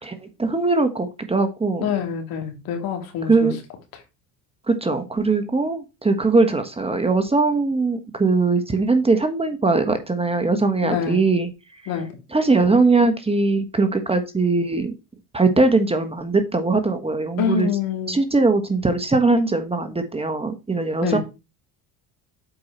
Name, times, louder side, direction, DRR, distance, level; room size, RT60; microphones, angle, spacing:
voice 1, 0.0-1.9 3.3-3.6 4.7-11.5 12.3-14.9 15.3-17.7 18.1-21.2, right 3 dB, 15° right, 1.3 m, -20 dB
voice 2, 1.8-3.5 10.8-11.2 11.9-12.1 17.4-18.1 21.0-21.2, left 7 dB, 65° left, 2.6 m, -25 dB
7.9 x 4.8 x 4.4 m
supercardioid pair, 90°, 38 cm